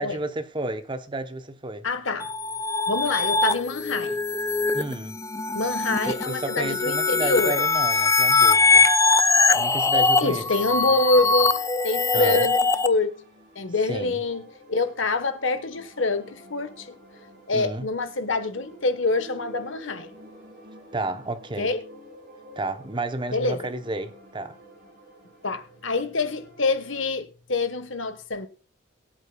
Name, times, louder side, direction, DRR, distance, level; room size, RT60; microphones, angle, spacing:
voice 1, 0.0-1.9 4.7-5.2 6.1-8.9 9.5-10.5 12.1-12.5 13.9-14.2 17.5-17.9 20.9-21.7 22.6-24.6, right 2 dB, 25° right, 0.8 m, -31 dB
voice 2, 1.8-2.3 2.9-4.2 5.5-7.6 9.9-11.6 11.8-13.1 13.5-17.0 17.5-20.1 21.6-21.8 23.3-23.7 25.4-28.5, left 3 dB, 65° left, 1.2 m, -26 dB
sound 1, 2.2-12.9, left 3 dB, 15° left, 0.4 m, -22 dB
sound 2, 9.3-27.1, equal, 40° right, 6.1 m, -50 dB
22.5 x 8.2 x 2.3 m
head